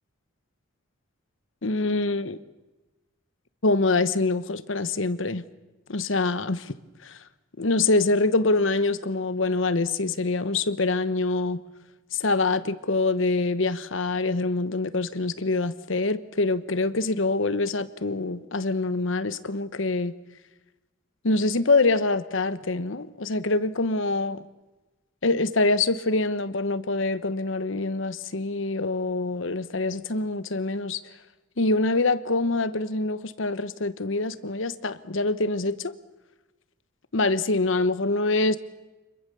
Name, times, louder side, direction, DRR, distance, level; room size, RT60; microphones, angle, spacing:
voice 1, 1.6-2.4 3.6-5.4 5.9-6.7 7.0-7.2 7.6-11.6 12.1-20.1 21.2-24.4 25.2-31.0 31.6-35.9 37.1-38.6, left 3 dB, 70° left, 1.0 m, -25 dB
26.5 x 21.5 x 6.9 m
head